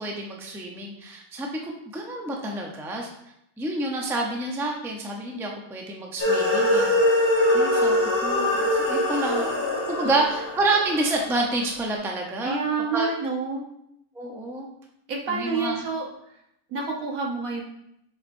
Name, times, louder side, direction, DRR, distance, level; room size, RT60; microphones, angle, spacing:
voice 1, 0.0-3.1 3.6-6.9 7.2-7.3 7.5-8.0 8.2-9.6 9.9-12.6 12.9-13.1 14.1-14.7 15.3-15.9, right 2 dB, 5° right, 0 dB, 0.5 m, -28 dB
sound 1, 6.2-11.6, left 1 dB, 40° left, 1.9 m, -23 dB
voice 2, 12.4-13.6 15.1-16.0 16.7-17.6, right 4 dB, 75° right, -1 dB, 1.6 m, -28 dB
6.9 x 5.1 x 2.7 m, 0.78 s
omnidirectional pair, 1.5 m